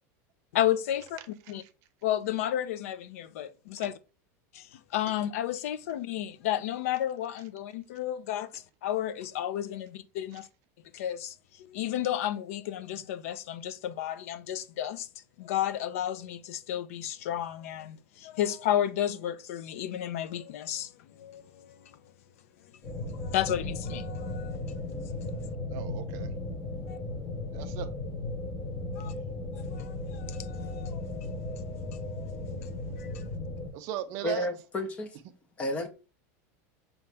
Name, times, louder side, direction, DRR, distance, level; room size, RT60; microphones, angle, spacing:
voice 1, 0.5-1.2 1.5-1.6 2.0-3.9 4.5-10.5 10.9-11.3 11.7-15.1 15.4-21.7 23.2-24.6 29.0-29.1 29.5-33.2, left 11 dB, 70° left, 0.4 m, -32 dB
sound 1, 22.8-33.7, left 2 dB, 35° left, 1.3 m, -36 dB
voice 2, 25.7-26.6 27.5-27.9 33.7-34.5, right 12 dB, 35° right, 0.5 m, -37 dB
voice 3, 34.2-35.1 35.6-35.9, left 1 dB, 15° left, 0.5 m, -31 dB
5.3 x 2.9 x 3.3 m
supercardioid pair, 180°, 8 cm